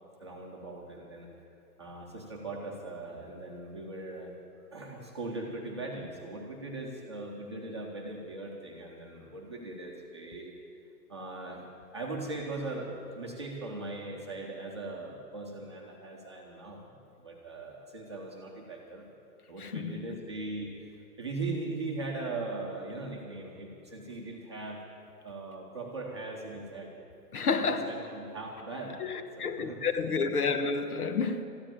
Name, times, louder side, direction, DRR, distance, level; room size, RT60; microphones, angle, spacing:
voice 1, 0.2-1.3 1.8-4.3 4.6-10.5 11.1-11.6 11.9-19.0 19.5-24.8 25.2-26.9 27.6-29.0 29.4-29.8 30.3-30.4, right 2 dB, 15° right, 0.8 m, -39 dB
voice 2, 19.6-20.0 27.3-28.0 29.0-31.4, left 4 dB, 65° left, 1.2 m, -30 dB
13.5 x 10.0 x 8.8 m
hypercardioid pair, 180°, 48 cm